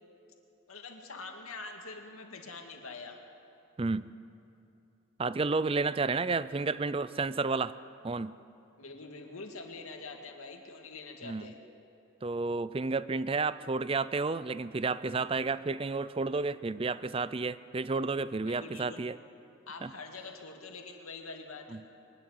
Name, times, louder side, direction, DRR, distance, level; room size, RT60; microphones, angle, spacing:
voice 1, 0.7-3.2 6.1-6.2 8.8-11.6 18.4-19.0 19.7-21.8, left 3 dB, 80° left, 3 dB, 2.2 m, -45 dB
voice 2, 3.8-4.1 5.2-7.8 8.0-8.3 11.2-11.5 12.2-19.2 19.8-19.9 21.7-21.8, right 3 dB, 25° right, 16 dB, 0.4 m, -31 dB
22.5 x 12.5 x 9.8 m, 2.8 s
head